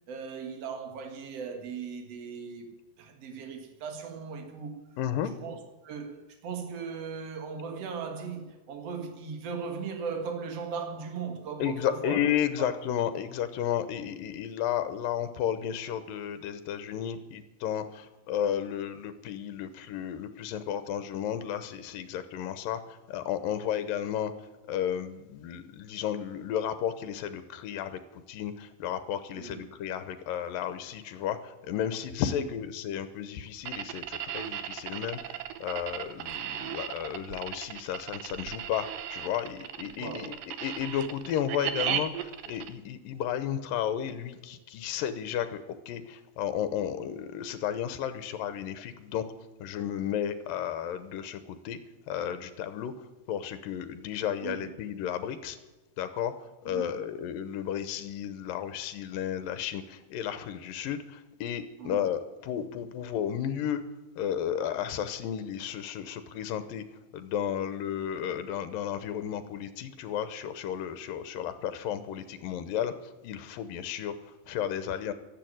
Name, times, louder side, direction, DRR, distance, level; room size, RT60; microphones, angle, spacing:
voice 1, 0.1-4.8 5.4-12.2 12.6-12.7 29.4-29.7 32.4-32.5 40.0-40.4 54.4-54.7 56.7-57.0 61.8-62.0, right 5 dB, 50° right, 2.6 m, -38 dB
voice 2, 5.0-5.3 11.6-49.3 49.6-51.8 52.1-55.6 56.0-56.3 56.6-63.8 64.2-66.8 67.1-74.1 74.5-75.1, left 9 dB, 80° left, 2.6 m, -33 dB
sound 1, 33.7-42.7, right 10 dB, 80° right, 2.5 m, -36 dB
12.5 x 11.0 x 8.9 m
omnidirectional pair, 4.0 m